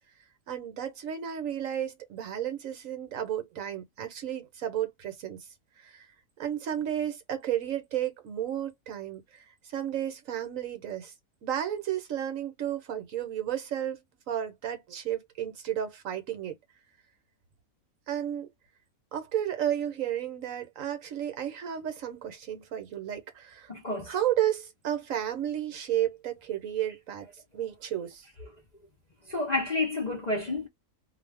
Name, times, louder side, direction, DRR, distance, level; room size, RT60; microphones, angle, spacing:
voice 1, 0.5-5.5 5.8-6.0 6.4-11.1 11.4-14.0 14.3-16.6 18.1-18.5 19.1-23.7 24.1-27.3 27.5-28.2, right 10 dB, 65° right, 1.1 m, -32 dB
voice 2, 23.7-24.2 28.4-28.5 29.2-30.7, left 2 dB, 40° left, 0.7 m, -30 dB
2.5 x 2.3 x 3.2 m
omnidirectional pair, 1.6 m